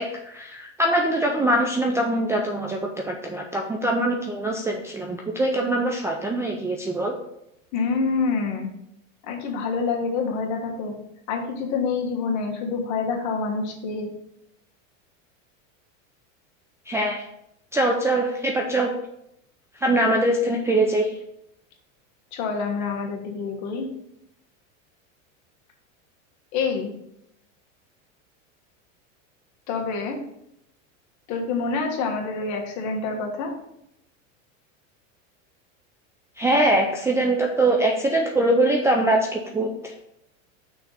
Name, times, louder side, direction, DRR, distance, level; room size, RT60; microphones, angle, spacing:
voice 1, 0.0-7.1 16.9-17.3 17.7-18.9 19.8-21.1 36.4-39.9, right 1 dB, 5° right, 1 dB, 0.4 m, -23 dB
voice 2, 7.7-8.7 9.2-10.9 11.3-14.1 22.3-23.9 26.5-26.9 29.7-30.2 31.3-33.5, left 4 dB, 45° left, 1 dB, 1.6 m, -27 dB
5.9 x 3.8 x 5.6 m, 0.79 s
supercardioid pair, 130°, 39 cm